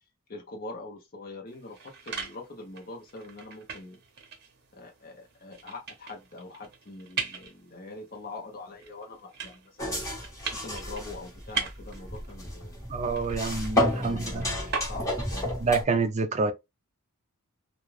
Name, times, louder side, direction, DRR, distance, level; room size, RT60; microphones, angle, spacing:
voice 1, 0.3-1.8 2.1-4.0 4.7-10.1 10.5-12.9 13.9-15.6, left 2 dB, 40° left, 0.8 m, -43 dB
sound 1, 1.5-15.4, right 5 dB, 45° right, 0.9 m, -41 dB
sound 2, 9.8-15.8, left 1 dB, 15° left, 1.3 m, -31 dB
voice 2, 12.9-14.6 15.6-16.5, right 4 dB, 30° right, 0.4 m, -27 dB
2.4 x 2.3 x 3.1 m
head